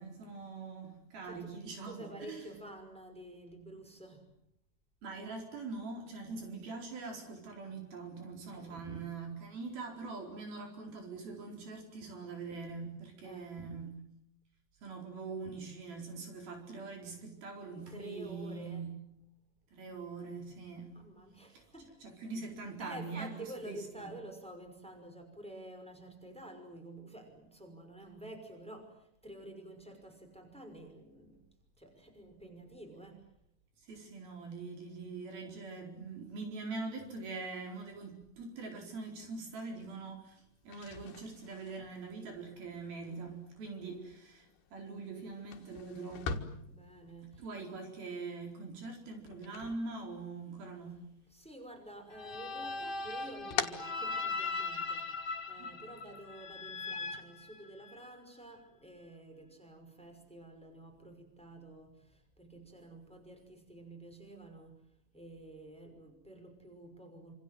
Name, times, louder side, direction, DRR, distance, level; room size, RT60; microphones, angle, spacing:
voice 1, 0.0-2.4 5.0-13.9 14.8-18.9 19.7-20.9 21.5-21.6 22.0-24.1 33.9-46.4 47.4-51.0 55.6-55.7, right 4 dB, 75° right, 6.3 m, -43 dB
voice 2, 1.8-4.3 8.6-8.9 13.2-13.6 17.9-18.9 20.9-22.1 22.8-31.5 31.8-33.3 43.0-43.5 46.7-47.6 51.3-64.8 65.1-67.3, right 1 dB, ahead, 5.4 m, -50 dB
sound 1, 40.6-50.6 50.9-51.8 52.1-54.8, left 7 dB, 85° left, 3.6 m, -44 dB
sound 2, 52.1-58.1, left 4 dB, 50° left, 1.3 m, -39 dB
27.5 x 27.0 x 7.8 m
omnidirectional pair, 4.3 m